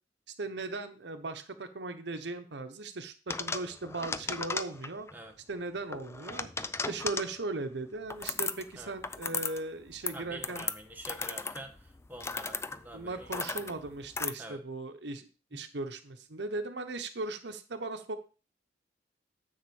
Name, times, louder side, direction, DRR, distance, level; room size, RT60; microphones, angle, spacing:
voice 1, 0.4-5.1 5.5-6.5 6.9-10.6 12.9-18.2, right 2 dB, 70° right, 8 dB, 0.9 m, -38 dB
sound 1, 3.3-5.1 5.9-7.4 8.1-8.7 9.0-9.6 9.9-14.3, left 4 dB, 15° left, 0.4 m, -36 dB
voice 2, 10.1-13.9 14.4-14.6 15.5-15.6, right 1 dB, 10° right, 2 dB, 1.1 m, -47 dB
9.7 x 3.9 x 7.0 m, 0.34 s
head